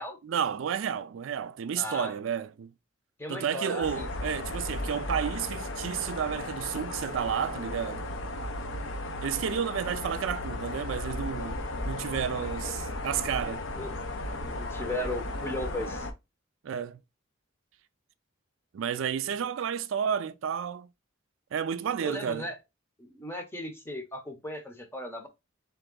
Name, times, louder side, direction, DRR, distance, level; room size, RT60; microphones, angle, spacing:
voice 1, 0.2-2.7 3.3-8.1 9.2-13.7 16.6-17.0 18.7-20.9 21.5-22.5, right 8 dB, 75° right, 0.4 m, -31 dB
voice 2, 1.8-2.1 3.2-4.3 10.1-10.2 12.6-12.7 13.7-13.9 14.4-16.1 22.0-22.6 23.0-25.3, left 1 dB, 10° left, 0.7 m, -36 dB
sound 1, 3.8-16.1, left 2 dB, 70° left, 0.7 m, -35 dB
3.5 x 3.4 x 3.7 m
head